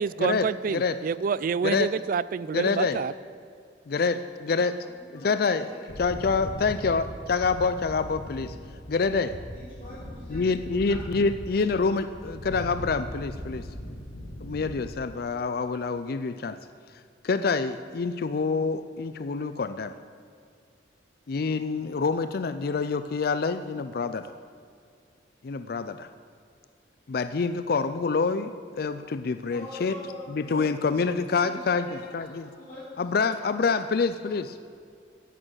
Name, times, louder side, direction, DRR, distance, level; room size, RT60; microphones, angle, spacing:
voice 1, 0.0-3.1, right 6 dB, 50° right, 19 dB, 0.3 m, -28 dB
voice 2, 2.5-3.0 3.9-4.7 5.1-5.7 6.0-8.6 8.9-9.4 10.3-13.7 14.4-16.5 17.2-19.9 21.3-24.3 25.4-26.1 27.1-28.5 28.8-30.0 30.3-31.9 32.1-32.5 33.0-34.6, left 4 dB, 55° left, 11 dB, 0.4 m, -26 dB
voice 3, 5.0-5.7 9.5-10.4 29.5-30.6 31.4-32.1 32.6-33.2 33.6-33.7, left 2 dB, 40° left, -10 dB, 3.3 m, -43 dB
sound 1, 5.9-14.9, equal, 80° left, 1.7 m, -39 dB
11.0 x 8.8 x 8.9 m, 2.4 s
head